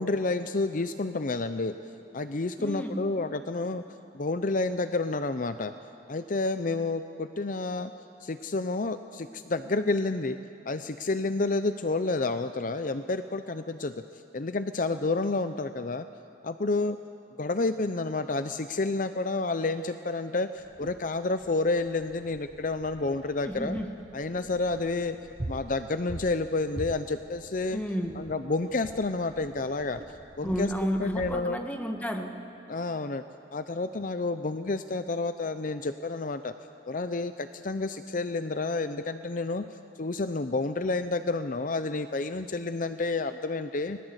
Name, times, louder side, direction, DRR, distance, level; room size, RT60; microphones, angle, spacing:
voice 1, 0.0-1.7 2.1-3.8 4.1-5.7 6.1-7.9 8.2-10.4 10.7-13.9 14.3-16.1 16.4-17.0 17.4-23.8 24.1-25.2 25.5-27.8 28.2-30.0 30.4-31.6 32.7-33.2 33.5-36.5 36.9-39.6 40.0-44.0, left 3 dB, 45° left, 10 dB, 0.6 m, -30 dB
voice 2, 2.6-3.1 23.4-23.9 27.7-28.2 30.4-32.3, equal, 10° left, 3 dB, 1.8 m, -32 dB
sound 1, 20.6-31.4, right 2 dB, 30° right, 0.6 m, -45 dB
30.0 x 20.5 x 8.1 m, 2.9 s
head